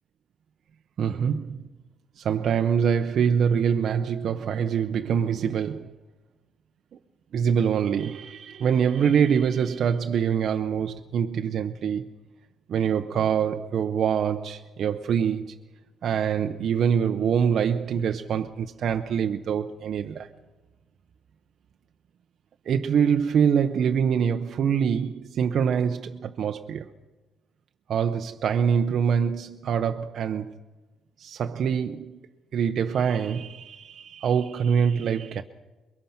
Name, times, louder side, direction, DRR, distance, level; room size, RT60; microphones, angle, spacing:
voice 1, 1.0-1.7 2.2-6.0 7.3-12.1 12.7-15.6 16.0-20.3 22.6-26.9 27.9-30.5 31.2-32.2 32.5-35.4, right 7 dB, 65° right, 0.8 m, -24 dB
23.0 x 22.5 x 5.8 m
cardioid pair, 90°, 0 cm